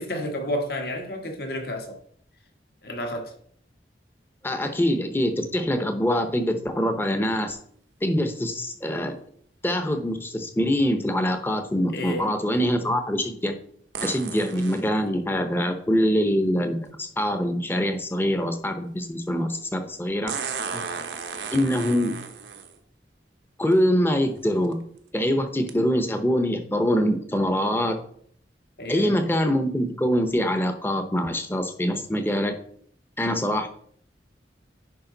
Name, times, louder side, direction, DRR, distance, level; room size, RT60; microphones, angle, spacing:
voice 1, 0.0-2.0 2.8-3.3 11.9-12.3 20.7-20.9 28.8-29.2, equal, 60° left, 1.6 m, -31 dB
voice 2, 4.4-7.6 8.0-9.1 9.6-13.5 14.0-20.3 21.5-22.1 23.6-24.8 25.1-28.0 28.9-32.5 33.2-33.7, equal, 10° left, 0.8 m, -24 dB
sound 1, 13.9-14.8 16.9-17.0 20.3-22.8 23.7-23.8 24.5-24.7 25.7-25.8, right 5 dB, 85° right, 0.9 m, -34 dB
10.5 x 5.0 x 3.9 m
head